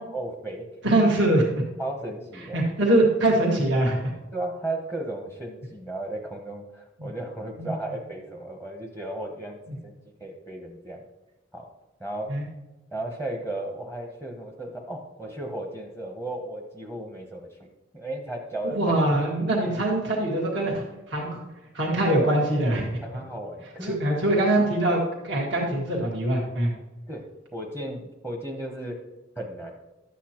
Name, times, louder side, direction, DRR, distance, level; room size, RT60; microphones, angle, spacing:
voice 1, 0.1-0.7 1.8-2.6 4.3-11.0 11.5-11.7 12.0-12.3 12.9-17.6 17.9-18.8 23.0-24.0 27.1-27.2 27.5-29.0 29.4-29.7, right 1 dB, 10° right, 1 dB, 0.8 m, -35 dB
voice 2, 0.8-1.6 2.5-4.0 7.0-7.1 7.6-7.7 9.7-9.8 12.3-12.4 18.6-21.4 21.7-22.9 23.8-26.7, right 1 dB, 60° right, -2 dB, 1.7 m, -23 dB
12.0 x 8.3 x 2.9 m, 1.0 s
head